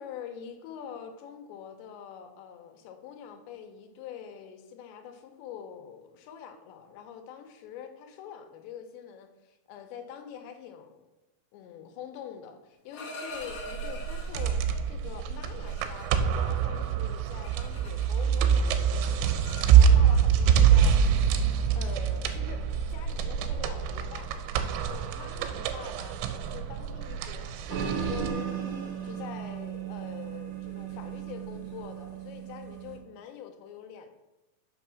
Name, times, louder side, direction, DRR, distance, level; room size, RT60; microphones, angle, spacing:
voice 1, 0.0-11.0 11.5-21.0 21.4-21.5 21.8-24.3 24.9-28.5 29.0-34.1, left 8 dB, 85° left, 6 dB, 2.9 m, -45 dB
sound 1, 12.7-14.8 15.4-18.4 18.7-20.2 21.1-21.3 21.6-21.9 22.4-22.6 23.0-23.2 23.5-23.8 24.0-29.4, left 1 dB, 70° left, 1.7 m, -46 dB
sound 2, 13.5-28.3, right 8 dB, 90° right, 3.0 m, -25 dB
sound 3, 27.7-33.0, right 8 dB, 60° right, 2.2 m, -36 dB
6.2 x 5.8 x 5.8 m, 1.0 s
omnidirectional pair, 5.2 m